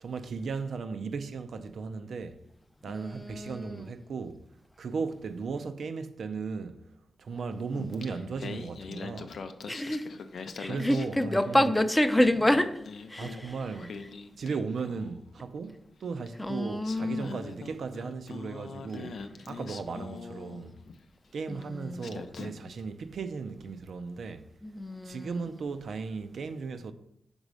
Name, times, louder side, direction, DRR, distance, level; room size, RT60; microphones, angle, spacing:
voice 1, 0.0-2.4 2.8-4.4 4.8-6.8 7.2-9.4 10.6-11.8 13.1-13.9 14.4-20.7 21.3-24.5 25.0-26.9, right 5 dB, 75° right, 0.5 m, -36 dB
voice 2, 2.9-3.8 9.7-10.1 10.6-12.8 13.1-13.3 16.4-17.4 20.0-20.6 21.5-22.1 24.6-25.5, left 1 dB, 10° left, 0.5 m, -28 dB
Singing, 7.8-11.7 12.0-15.2 16.3-16.4 16.8-21.0 21.6-21.7 22.0-22.8, left 5 dB, 80° left, 0.4 m, -43 dB
5.3 x 4.0 x 4.7 m
cardioid pair, 75°, 0 cm